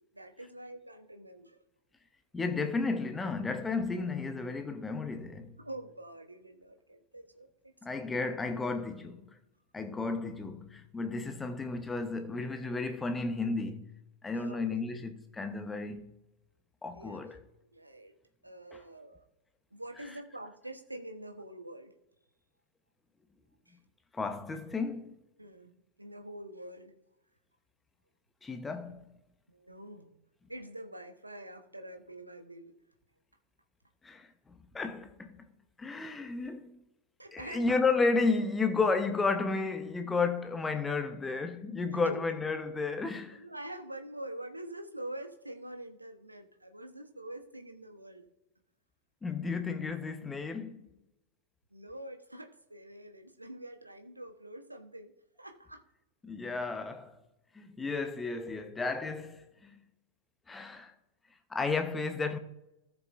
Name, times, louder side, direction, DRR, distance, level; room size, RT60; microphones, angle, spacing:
voice 1, 0.1-1.6 5.6-8.0 14.3-14.8 16.9-17.3 17.7-18.1 18.4-19.2 19.7-21.9 23.7-23.8 25.4-26.9 29.5-30.1 30.5-32.8 37.2-37.7 41.9-42.2 43.4-48.3 51.7-55.1 55.4-55.8, right 1 dB, 85° right, 1.1 m, -45 dB
voice 2, 2.3-5.6 7.8-9.2 9.7-13.9 14.2-16.1 16.8-17.4 18.7-18.8 24.1-25.1 28.4-29.0 34.0-35.4 35.8-36.8 37.3-43.4 49.2-50.9 56.2-57.1 57.5-59.8 60.5-60.9 61.5-62.4, left 4 dB, 15° left, 1.0 m, -33 dB
17.5 x 7.1 x 2.6 m
figure-of-eight pair, 90°, 0 cm